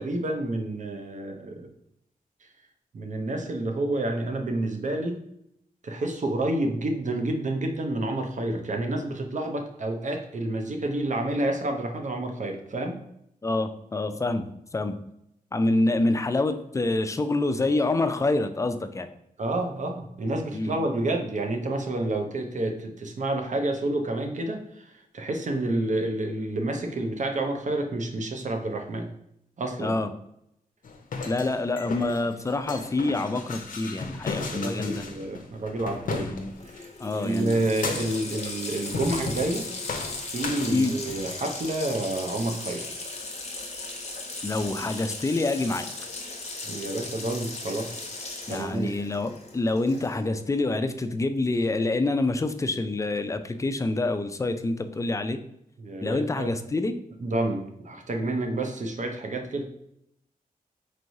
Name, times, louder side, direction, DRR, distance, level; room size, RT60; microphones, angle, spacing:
voice 1, 0.0-1.7 2.9-5.2 5.8-13.0 19.4-24.6 25.1-29.1 29.6-30.0 34.5-36.3 36.7-36.9 37.1-39.7 40.3-42.9 46.6-48.0 48.5-48.9 55.8-56.5 57.2-59.6, right 2 dB, 55° right, 4 dB, 0.7 m, -29 dB
voice 2, 13.4-14.4 14.7-15.0 15.5-19.1 20.5-20.8 29.8-30.1 31.2-35.0 36.1-36.5 37.0-37.6 40.7-40.9 44.4-45.9 48.5-55.4 56.0-57.0, left 2 dB, 20° left, 8 dB, 0.4 m, -26 dB
sound 1, 30.8-36.8 37.5-38.4 38.9-39.6 39.9-41.3, left 4 dB, 65° left, 0.6 m, -36 dB
Water tap faucet, 36.3-36.4 36.6-50.4, left 3 dB, 45° left, 0.9 m, -37 dB
4.5 x 3.1 x 2.6 m, 0.77 s
cardioid pair, 60°, 15 cm